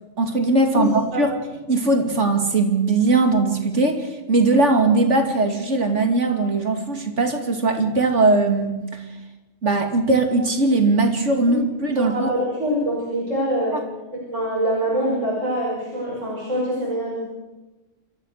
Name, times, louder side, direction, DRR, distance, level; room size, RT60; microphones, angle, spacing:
voice 1, 0.2-1.3 1.7-9.0 9.6-12.3, right 3 dB, 70° right, 5 dB, 2.9 m, -20 dB
voice 2, 11.9-13.8 14.1-17.2, equal, 90° right, -5 dB, 6.4 m, -24 dB
27.5 x 14.0 x 6.6 m, 1.1 s
omnidirectional pair, 1.3 m